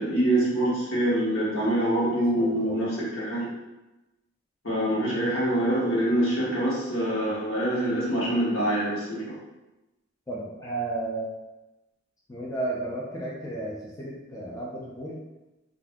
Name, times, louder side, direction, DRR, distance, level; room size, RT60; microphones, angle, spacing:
voice 1, 0.0-3.5 4.6-9.4, right 1 dB, 75° left, -7 dB, 1.2 m, -25 dB
voice 2, 2.2-2.8 10.3-11.3 12.3-15.2, right 2 dB, 15° left, -6 dB, 0.5 m, -33 dB
2.6 x 2.5 x 3.5 m, 1.0 s
head